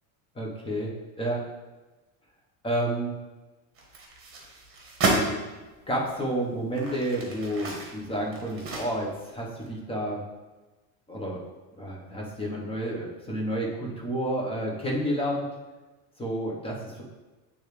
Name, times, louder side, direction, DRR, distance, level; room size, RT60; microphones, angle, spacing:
voice 1, 0.3-0.9 1.2-1.4 2.6-3.1 5.9-10.2 11.1-11.4 11.8-15.4 16.2-17.0, right 1 dB, 10° left, -3 dB, 1.1 m, -30 dB
sound 1, 3.8-5.3 6.0-6.1 6.6-9.3 9.6-9.7, right 3 dB, 25° right, 1.3 m, -31 dB
8.7 x 3.5 x 3.3 m, 1.2 s
supercardioid pair, 140°, 49 cm